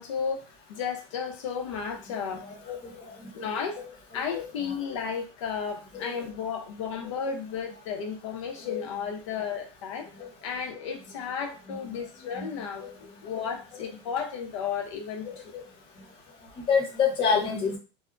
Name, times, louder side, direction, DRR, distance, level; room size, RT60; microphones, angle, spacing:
voice 1, 0.0-2.5 3.3-3.8 4.1-10.1 10.4-15.5, left 6 dB, 90° left, 3 dB, 0.6 m, -33 dB
voice 2, 16.7-17.8, left 6 dB, 35° left, 1 dB, 0.9 m, -27 dB
2.1 x 2.0 x 3.7 m, 0.33 s
supercardioid pair, 140°, 15 cm